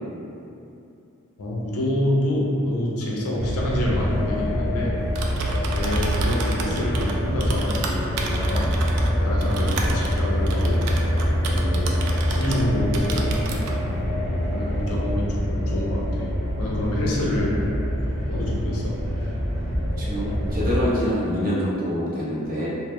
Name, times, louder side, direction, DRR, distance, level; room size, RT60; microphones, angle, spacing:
voice 1, 1.4-4.9 5.7-8.7 9.2-10.8 11.5-12.0 12.3-13.3 14.5-16.3 16.6-17.6 18.3-19.0, left 1 dB, 70° left, -4 dB, 0.5 m, -27 dB
sound 1, 3.4-20.8, equal, 15° right, 1.0 m, -25 dB
Typing, 5.0-12.7 12.9-13.8, right 2 dB, 90° right, 0.3 m, -30 dB
voice 2, 20.0-22.7, equal, 40° right, -8 dB, 0.6 m, -25 dB
2.1 x 2.0 x 2.9 m, 2.6 s
head